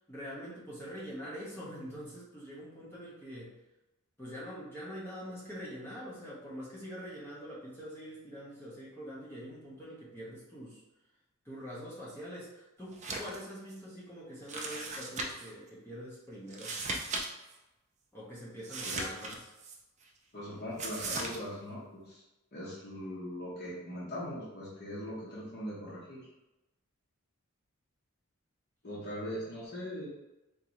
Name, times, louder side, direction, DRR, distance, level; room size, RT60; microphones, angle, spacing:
voice 1, 0.1-3.5 4.2-10.8 11.4-16.7 18.1-19.4, equal, 10° left, -7 dB, 0.7 m, -44 dB
sound 1, 12.9-13.4 13.7-13.8 14.5-15.5 16.5-17.3 17.5-17.6 18.6-19.8 20.8-21.4, right 2 dB, 30° right, 0.4 m, -37 dB
voice 2, 18.9-19.2 20.3-22.2 22.5-26.3 28.8-30.1, equal, 45° left, -8 dB, 0.8 m, -40 dB
3.6 x 2.6 x 2.9 m, 0.99 s
head